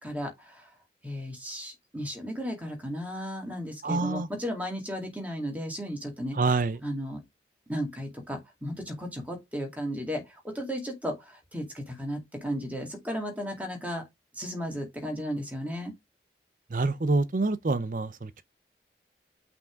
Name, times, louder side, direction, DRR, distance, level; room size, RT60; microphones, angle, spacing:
voice 1, 0.0-0.7 1.0-6.4 6.8-7.2 7.7-14.0 14.3-15.9, equal, 10° right, 2.2 m, -35 dB
voice 2, 3.8-4.3 6.3-6.8 16.7-18.4, right 3 dB, 50° right, 0.5 m, -26 dB
5.9 x 3.5 x 5.1 m
head